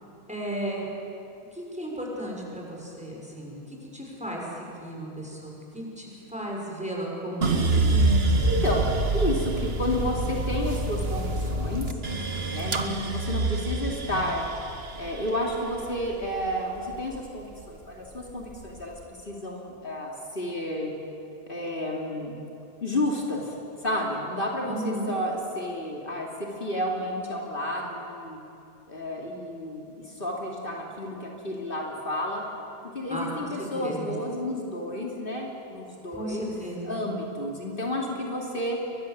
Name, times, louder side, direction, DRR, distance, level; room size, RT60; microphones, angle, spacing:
voice 1, 0.3-0.9 1.5-8.2 24.6-25.1 33.1-34.1 36.1-37.0, right 1 dB, 5° right, -2 dB, 6.1 m, -35 dB
sound 1, 7.4-17.6 18.1-18.8, right 2 dB, 70° right, 1.7 m, -27 dB
voice 2, 8.5-8.9 9.1-11.9 12.5-14.5 14.9-20.9 21.5-22.4 22.8-23.5 23.8-28.4 28.9-32.4 32.9-36.5 36.8-38.8, left 1 dB, 60° left, -1 dB, 3.2 m, -31 dB
29.0 x 23.5 x 7.7 m, 2.7 s
omnidirectional pair, 1.1 m